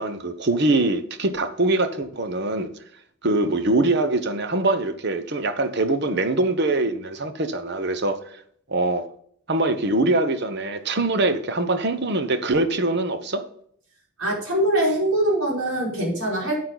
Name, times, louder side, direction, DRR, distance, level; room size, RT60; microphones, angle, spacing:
voice 1, 0.0-2.7 3.2-8.2 8.7-9.0 9.5-13.4, right 2 dB, 50° right, 0.9 m, -23 dB
voice 2, 14.2-16.6, right 1 dB, 75° right, 5.0 m, -23 dB
9.2 x 8.5 x 4.0 m
head